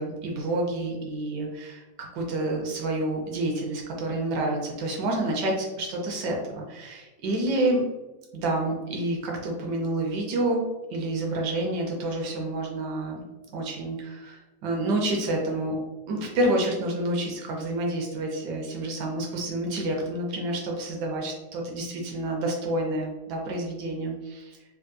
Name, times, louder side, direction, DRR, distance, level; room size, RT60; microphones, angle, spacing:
voice 1, 0.0-7.8 8.3-10.6 10.9-13.2 13.5-15.8 16.1-24.6, right 1 dB, 80° right, 0 dB, 1.3 m, -28 dB
3.4 x 2.7 x 2.2 m, 1.1 s
omnidirectional pair, 1.8 m